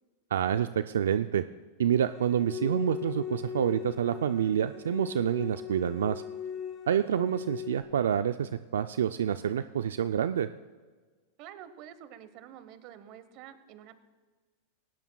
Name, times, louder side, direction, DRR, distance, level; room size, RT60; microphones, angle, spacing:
voice 1, 0.3-1.4 1.8-6.2 6.9-10.5, right 9 dB, 90° right, 11 dB, 0.3 m, -28 dB
sound 1, 2.0-7.8, left 8 dB, 25° left, 2.2 m, -39 dB
voice 2, 11.4-13.9, right 10 dB, 50° right, 12 dB, 1.0 m, -48 dB
18.0 x 16.5 x 2.3 m, 1.4 s
hypercardioid pair, 125°, 0 cm